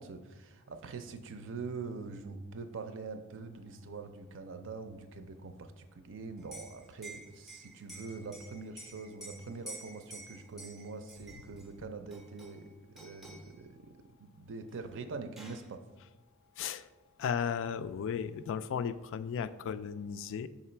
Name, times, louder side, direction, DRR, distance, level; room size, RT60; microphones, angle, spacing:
voice 1, 0.0-15.8, right 4 dB, 60° right, 8 dB, 0.5 m, -44 dB
Liquid, 6.4-11.7 12.1-12.7 13.0-13.5 14.7-14.8 15.1-15.7, right 1 dB, ahead, 0.5 m, -50 dB
voice 2, 16.6-16.9 17.2-20.5, left 7 dB, 60° left, 13 dB, 0.3 m, -35 dB
5.8 x 3.9 x 4.3 m, 1.2 s
head